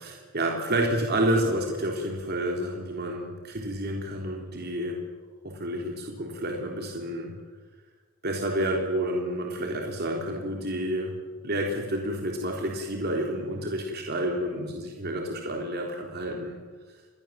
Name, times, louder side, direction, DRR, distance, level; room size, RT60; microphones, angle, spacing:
voice 1, 0.0-5.0 5.4-7.4 8.2-11.2 11.4-16.6, right 1 dB, 50° right, 1 dB, 3.5 m, -29 dB
27.5 x 21.5 x 7.5 m, 1.4 s
head